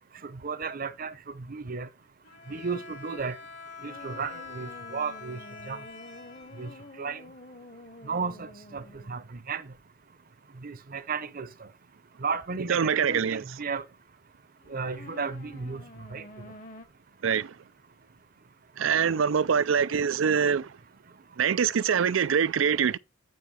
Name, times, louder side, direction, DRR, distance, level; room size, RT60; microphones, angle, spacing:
voice 1, 0.2-1.1 1.5-1.9 2.5-3.4 3.8-5.4 5.7-5.8 6.6-6.7 7.0-7.2 8.0-9.2 9.5-9.7 10.6-11.5 12.2-13.8 14.7-15.8 16.1-16.2, right 5 dB, 50° right, 0.8 m, -34 dB
Bowed string instrument, 2.2-7.3, left 5 dB, 65° left, 3.0 m, -45 dB
sound 1, 3.9-9.3 14.6-16.8, left 1 dB, 45° left, 1.3 m, -48 dB
voice 2, 12.7-13.4 17.2-17.5 18.8-20.8 21.4-23.0, right 7 dB, 85° right, 0.5 m, -24 dB
9.2 x 5.6 x 4.2 m
head